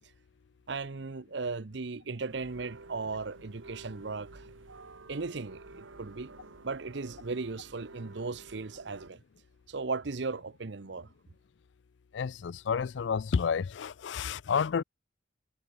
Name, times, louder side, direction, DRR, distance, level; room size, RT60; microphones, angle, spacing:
voice 1, 0.7-4.5 5.1-6.3 6.6-9.2 9.7-11.1, right 4 dB, 65° right, 0.8 m, -37 dB
sound 1, 2.3-9.1, right 3 dB, 90° right, 1.5 m, -51 dB
voice 2, 12.1-14.8, left 6 dB, 65° left, 0.4 m, -30 dB
head